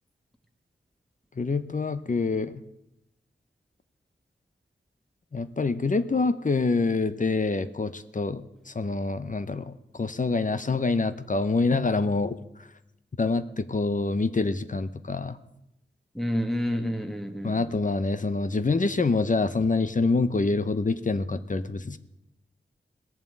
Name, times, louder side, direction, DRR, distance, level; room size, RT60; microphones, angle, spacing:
voice 1, 1.4-2.6 5.3-12.4 13.2-15.4 17.4-22.0, left 3 dB, 45° left, 13 dB, 0.8 m, -26 dB
voice 2, 16.1-17.6, equal, ahead, 4 dB, 1.6 m, -29 dB
18.5 x 7.4 x 8.7 m, 0.86 s
wide cardioid pair, 85°, 19 cm